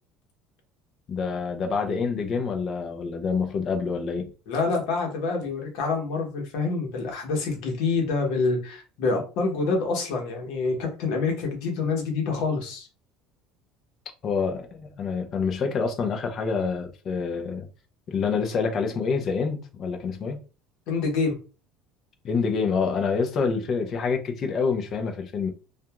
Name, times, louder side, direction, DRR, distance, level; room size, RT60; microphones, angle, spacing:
voice 1, 1.1-4.3 14.2-17.7 18.1-20.4 22.2-25.5, left 5 dB, 45° left, 0.6 m, -27 dB
voice 2, 4.5-12.9 20.9-21.4, left 4 dB, 75° left, 1.0 m, -26 dB
2.7 x 2.4 x 2.3 m
supercardioid pair, 115°, 0 cm